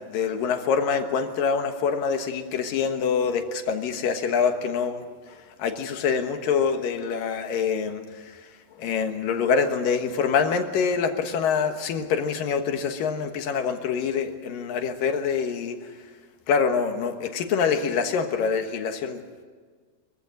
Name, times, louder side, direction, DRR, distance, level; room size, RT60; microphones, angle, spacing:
voice 1, 0.1-5.0 5.6-8.0 8.8-15.8 16.5-19.2, left 6 dB, 65° left, 6 dB, 2.9 m, -25 dB
24.0 x 15.5 x 9.4 m, 1.5 s
omnidirectional pair, 4.5 m